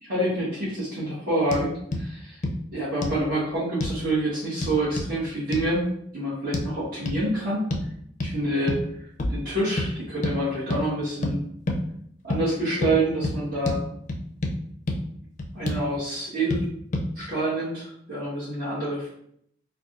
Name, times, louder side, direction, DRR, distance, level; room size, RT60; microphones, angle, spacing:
voice 1, 0.0-2.4 2.7-5.9 6.1-7.6 8.2-8.8 9.3-11.4 12.2-13.8 15.5-16.7 17.1-19.1, right 1 dB, 55° right, -11 dB, 1.4 m, -27 dB
sound 1, 1.5-1.6 1.9-2.0 2.4-2.6 3.0-3.2 3.8-4.0 4.6-5.1 5.5-5.7 6.5-6.7 7.1-7.2 7.7-7.9 8.2-8.3 8.7-8.9 9.2-9.4 9.8-9.9 10.2-10.4 10.7-10.8 11.2-11.4 11.7-11.8 12.3-12.4 12.8-13.0 13.2-13.4 13.7-13.8 14.1-14.6 14.9-15.0 15.4-15.8 16.5-16.6 16.9-17.1, left 1 dB, 40° left, 0.5 m, -27 dB
4.6 x 2.3 x 2.6 m, 0.68 s
head